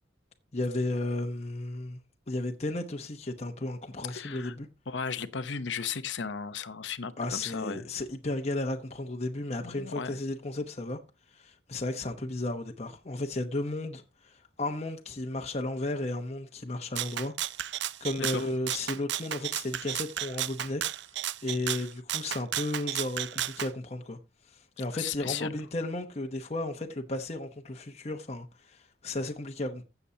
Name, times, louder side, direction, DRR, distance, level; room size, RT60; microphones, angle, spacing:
voice 1, 0.5-2.0 2.3-4.7 7.2-11.0 11.3-17.3 18.0-20.8 21.4-24.2 24.5-29.8, left 2 dB, 35° left, 0.9 m, -34 dB
voice 2, 4.0-4.6 4.9-7.9 9.6-10.2 18.2-18.5 24.8-25.6, left 6 dB, 65° left, 0.8 m, -35 dB
Rattle (instrument), 17.0-23.7, right 12 dB, 60° right, 0.5 m, -33 dB
15.5 x 7.0 x 2.8 m
head